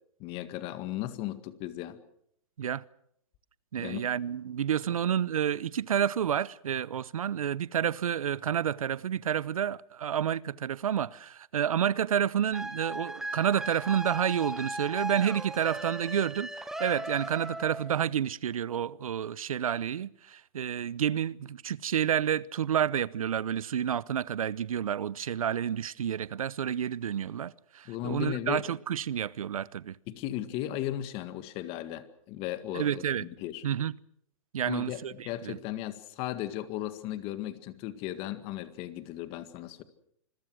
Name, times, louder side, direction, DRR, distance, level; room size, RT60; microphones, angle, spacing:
voice 1, 0.2-2.0 3.8-4.1 27.9-28.7 30.1-33.6 34.7-39.8, left 13 dB, 30° left, 1.9 m, -36 dB
voice 2, 3.7-30.0 32.7-33.2 33.6-33.9 34.5-35.6, right 9 dB, 90° right, 0.8 m, -30 dB
sound 1, 12.5-18.0, right 1 dB, 5° right, 1.5 m, -37 dB
26.5 x 22.0 x 6.3 m
hypercardioid pair, 145°, 17 cm